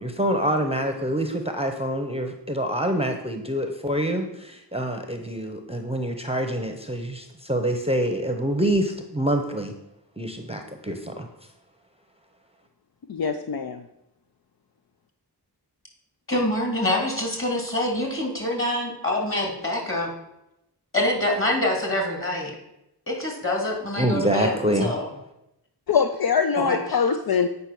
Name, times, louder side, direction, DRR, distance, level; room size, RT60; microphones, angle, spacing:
voice 1, 0.0-9.7 10.2-11.3 24.0-24.9, right 1 dB, 15° right, 5 dB, 0.8 m, -26 dB
voice 2, 13.1-13.8 25.9-27.5, left 6 dB, 60° left, 7 dB, 0.6 m, -23 dB
voice 3, 16.3-20.1 20.9-22.5 23.1-25.1 26.6-27.0, left 1 dB, 30° left, 0 dB, 2.7 m, -25 dB
8.4 x 5.4 x 6.0 m, 0.87 s
wide cardioid pair, 80°, 41 cm